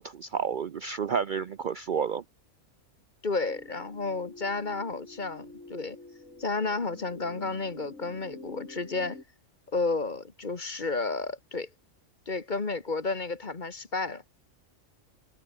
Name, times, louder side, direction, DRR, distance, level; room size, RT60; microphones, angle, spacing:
voice 1, 0.0-2.2, right 6 dB, 50° right, 0.6 m, -30 dB
voice 2, 3.2-6.0 6.4-9.2 9.7-11.7 12.3-14.2, left 3 dB, 40° left, 1.7 m, -32 dB
sound 1, 3.5-9.2, left 2 dB, 70° left, 5.0 m, -47 dB
omnidirectional pair, 1.3 m